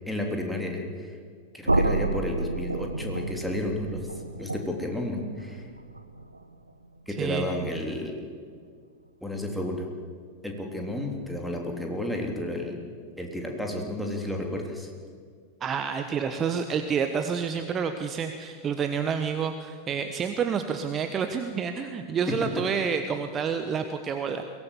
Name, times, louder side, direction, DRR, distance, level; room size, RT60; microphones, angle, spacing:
voice 1, 0.1-1.2 1.5-4.1 4.4-5.6 7.1-8.2 9.2-9.9 10.4-12.8 13.2-14.9, left 1 dB, ahead, 1 dB, 3.4 m, -32 dB
sound 1, 1.7-7.6, right 2 dB, 85° right, 0.8 m, -31 dB
voice 2, 7.2-7.6 15.6-24.4, right 6 dB, 25° right, 7 dB, 1.2 m, -29 dB
23.0 x 18.0 x 7.3 m, 2.1 s
figure-of-eight pair, 90°, 0 cm